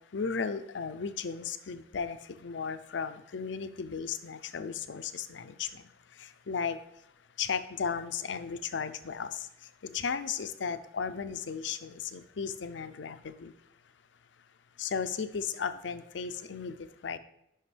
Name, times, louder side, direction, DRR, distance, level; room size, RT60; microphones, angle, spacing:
voice 1, 0.1-5.8 6.2-6.8 7.4-9.5 9.9-13.5 14.8-17.2, left 6 dB, 85° left, 10 dB, 0.5 m, -35 dB
11.0 x 5.2 x 3.3 m, 0.81 s
head